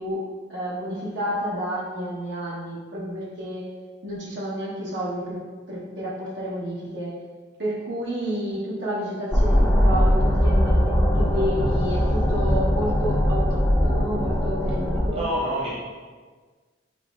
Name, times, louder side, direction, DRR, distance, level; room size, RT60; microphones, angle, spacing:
voice 1, 0.0-3.7 4.0-7.2 7.6-15.3, equal, 60° right, -6 dB, 1.0 m, -30 dB
sound 1, 9.3-15.1, equal, 10° left, 0.7 m, -20 dB
voice 2, 15.1-15.8, equal, 30° right, -6 dB, 1.0 m, -27 dB
7.3 x 2.9 x 2.4 m, 1.4 s
head